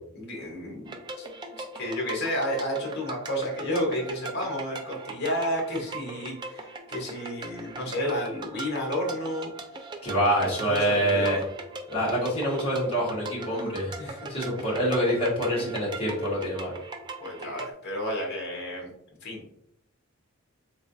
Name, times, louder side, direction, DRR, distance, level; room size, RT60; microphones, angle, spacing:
voice 1, 0.1-1.3 1.6-9.5 10.6-11.4 14.0-14.3 17.2-18.9 19.2-19.4, equal, 50° left, -1 dB, 1.0 m, -31 dB
sound 1, 0.9-17.7, right 3 dB, 20° right, 0.3 m, -40 dB
voice 2, 10.0-11.4 11.9-14.0 14.3-16.7, equal, 25° left, -6 dB, 1.4 m, -26 dB
3.8 x 3.1 x 2.6 m, 0.74 s
head